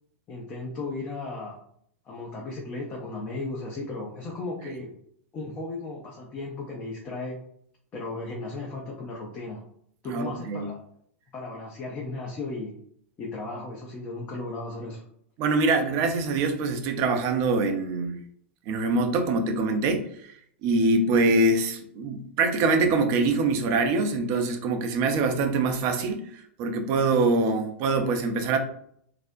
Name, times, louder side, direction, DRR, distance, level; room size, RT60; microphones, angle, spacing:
voice 1, 0.3-1.6 2.1-4.9 5.3-7.4 7.9-9.6 10.0-10.8 11.3-12.7 13.2-15.0, left 2 dB, 25° left, -2 dB, 0.5 m, -35 dB
voice 2, 10.1-10.7 15.4-18.2 18.7-20.3 20.6-28.6, right 3 dB, 40° right, 6 dB, 0.4 m, -24 dB
2.4 x 2.0 x 2.4 m, 0.66 s
figure-of-eight pair, 100°, 7 cm